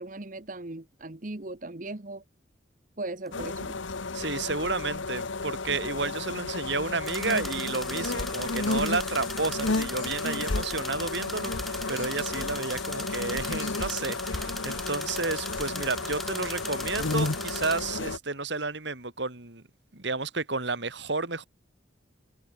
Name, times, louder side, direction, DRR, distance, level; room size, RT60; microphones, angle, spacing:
voice 1, 0.0-2.2 3.0-3.8, right 2 dB, 40° right, 1.2 m, -38 dB
sound 1, 3.3-18.2, left 3 dB, 80° left, 1.2 m, -32 dB
sound 2, 3.3-3.4 7.1-17.8, equal, ahead, 0.9 m, -39 dB
voice 2, 4.1-19.6 19.9-21.5, right 3 dB, 65° right, 2.6 m, -31 dB
head